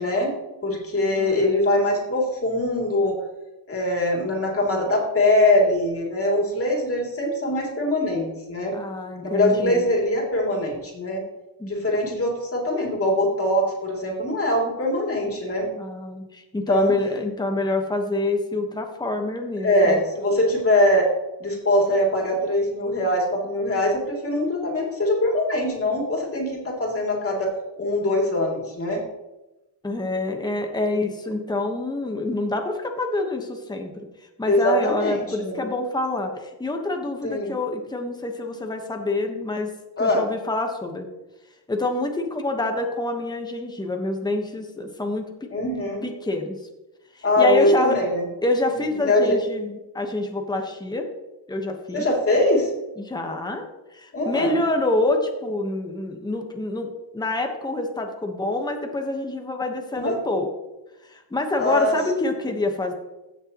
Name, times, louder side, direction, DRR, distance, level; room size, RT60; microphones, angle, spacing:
voice 1, 0.0-3.2 3.7-8.8 9.2-11.2 11.7-15.7 16.7-16.9 19.6-21.1 21.4-27.5 27.8-29.0 34.5-35.7 37.2-37.5 40.0-40.3 45.5-46.0 47.2-48.2 48.7-49.4 51.9-52.7 54.1-54.6 59.9-60.2 61.6-62.0, left 1 dB, 30° left, -1 dB, 2.9 m, -22 dB
voice 2, 8.7-9.9 11.6-11.7 15.7-20.0 29.8-33.9 34.4-39.7 40.0-41.1 41.7-45.5 46.0-46.6 47.4-48.0 48.4-51.0 51.5-52.1 53.0-53.7 53.9-60.5 61.1-62.9, left 2 dB, 10° left, 3 dB, 1.2 m, -27 dB
16.0 x 6.7 x 3.0 m, 1.0 s
cardioid pair, 135°, 45 cm